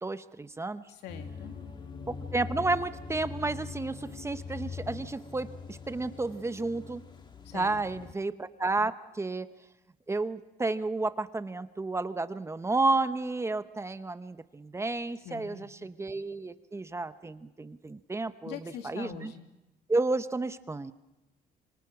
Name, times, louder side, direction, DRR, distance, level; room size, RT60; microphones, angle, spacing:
voice 1, 0.0-0.8 2.1-7.0 7.5-9.5 10.1-19.3 19.9-20.9, right 3 dB, 15° right, 12 dB, 0.9 m, -31 dB
voice 2, 0.9-1.5 7.4-8.1 15.2-15.7 18.4-19.5, left 8 dB, 85° left, 6 dB, 2.4 m, -43 dB
sound 1, 1.1-8.1, left 5 dB, 25° left, 1.8 m, -42 dB
26.5 x 25.0 x 6.0 m, 0.98 s
cardioid pair, 110°, 17 cm